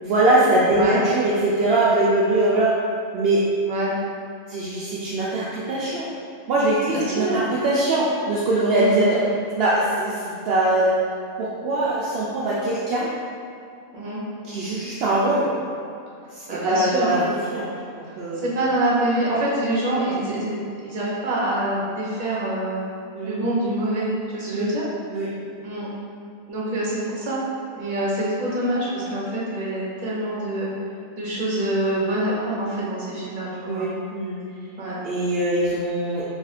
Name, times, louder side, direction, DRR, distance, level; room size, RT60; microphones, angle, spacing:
voice 1, 0.0-2.7 3.1-3.4 4.5-6.1 6.5-9.2 9.6-10.9 11.4-13.1 14.5-15.5 16.3-17.7 18.0-18.4 23.1-23.4 24.5-24.7 25.1-25.3 33.7-34.4 35.0-36.2, right 2 dB, 65° right, -7 dB, 0.6 m, -22 dB
voice 2, 6.9-7.5 8.7-9.3 13.9-14.2 16.5-17.2 18.4-22.8 23.2-24.1 24.3-24.8 25.6-25.9 26.5-27.4 27.7-30.7 31.2-33.9 34.8-35.0, right 1 dB, 35° right, -6 dB, 0.8 m, -25 dB
3.5 x 2.4 x 4.1 m, 2.4 s
omnidirectional pair, 1.5 m